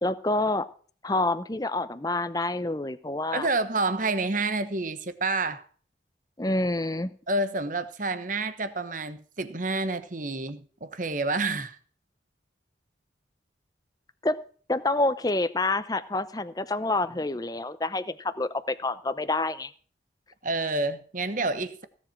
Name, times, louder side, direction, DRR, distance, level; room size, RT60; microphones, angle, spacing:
voice 1, 0.0-0.7 1.0-3.5 6.4-7.1 14.2-14.4 14.7-19.7, left 2 dB, 20° left, 13 dB, 0.7 m, -27 dB
voice 2, 3.3-5.6 7.3-11.8 20.4-21.8, right 3 dB, 45° right, 12 dB, 1.2 m, -29 dB
17.0 x 7.5 x 5.9 m, 0.43 s
head